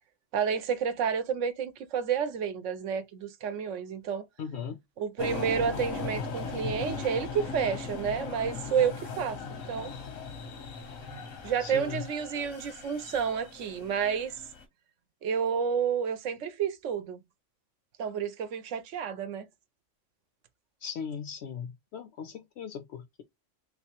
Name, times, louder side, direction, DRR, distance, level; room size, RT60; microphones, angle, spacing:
voice 1, 0.3-4.2 5.0-9.9 11.4-14.3 15.2-17.2 18.0-19.5, right 7 dB, 75° right, 1.0 m, -30 dB
voice 2, 4.4-4.8 11.6-12.0 20.8-23.2, left 7 dB, 65° left, 0.7 m, -38 dB
sound 1, 5.2-14.6, left 4 dB, 90° left, 1.2 m, -38 dB
Sigh, 11.0-11.6, right 4 dB, 40° right, 0.6 m, -51 dB
3.3 x 3.0 x 2.8 m
omnidirectional pair, 1.4 m